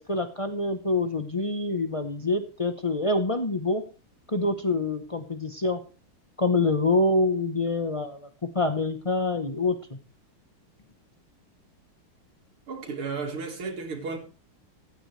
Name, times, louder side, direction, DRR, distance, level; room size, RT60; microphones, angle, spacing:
voice 1, 0.1-3.8 4.3-5.8 6.4-8.3 8.5-10.0, left 2 dB, 55° left, 0.3 m, -26 dB
voice 2, 12.7-14.2, right 4 dB, 80° right, 2.8 m, -33 dB
16.0 x 12.0 x 3.3 m
omnidirectional pair, 2.3 m